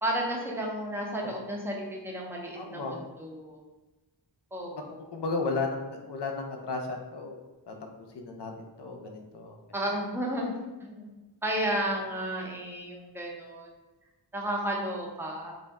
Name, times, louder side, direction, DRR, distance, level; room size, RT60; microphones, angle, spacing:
voice 1, 0.0-3.6 4.5-4.9 9.7-10.5 10.8-11.1 11.4-13.7 14.3-15.5, right 1 dB, 5° right, -1 dB, 0.6 m, -32 dB
voice 2, 2.6-3.0 5.0-7.4 7.7-9.6, left 3 dB, 65° left, 3 dB, 0.6 m, -34 dB
2.6 x 2.1 x 3.5 m, 1.1 s
wide cardioid pair, 55°, 45 cm